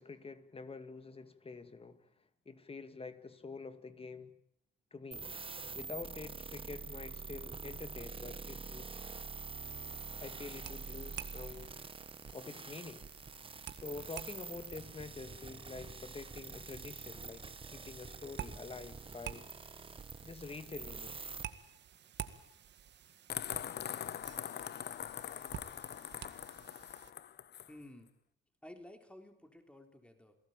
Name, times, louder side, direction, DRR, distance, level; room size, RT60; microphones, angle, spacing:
voice 1, 0.0-2.1 2.5-4.4 4.9-5.3 5.7-8.9 10.2-11.7 12.3-13.1 13.7-19.5 20.2-21.1, left 4 dB, 30° left, 2.3 m, -47 dB
sound 1, 5.1-21.4, right 4 dB, 25° right, 1.4 m, -46 dB
sound 2, 9.6-27.1, right 9 dB, 60° right, 2.0 m, -51 dB
sound 3, 23.3-27.7, left 10 dB, 55° left, 1.0 m, -42 dB
voice 2, 27.7-28.1 28.6-30.4, left 1 dB, 5° left, 3.8 m, -53 dB
28.5 x 18.0 x 9.1 m
cardioid pair, 90°, 20 cm